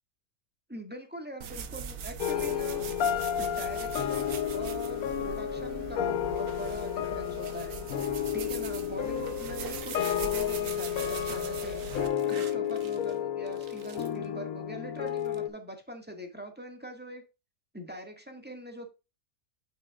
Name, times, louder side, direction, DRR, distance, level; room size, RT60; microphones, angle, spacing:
voice 1, 0.7-2.8 3.4-11.8 12.3-17.2 17.7-18.9, right 1 dB, 5° right, 4 dB, 1.6 m, -43 dB
sound 1, 1.4-12.1, right 6 dB, 85° right, 1.5 m, -41 dB
sound 2, 2.2-15.5, left 9 dB, 70° left, 1.2 m, -32 dB
sound 3, 9.8-13.2 13.5-14.3 15.0-15.4, right 7 dB, 65° right, 1.3 m, -51 dB
9.0 x 6.0 x 2.4 m, 0.28 s
omnidirectional pair, 1.5 m